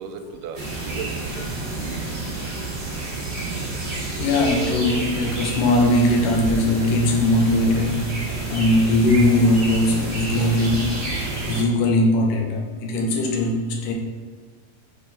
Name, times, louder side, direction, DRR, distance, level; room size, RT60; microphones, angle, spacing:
voice 1, 0.0-1.5 2.2-2.5, right 5 dB, 85° right, 6 dB, 2.2 m, -39 dB
sound 1, 0.5-11.6, right 2 dB, 30° right, 0.6 m, -29 dB
voice 2, 4.2-8.2 8.5-11.0 11.5-13.9, left 1 dB, 85° left, 0 dB, 2.5 m, -20 dB
6.6 x 3.4 x 5.7 m, 1.4 s
omnidirectional pair, 3.8 m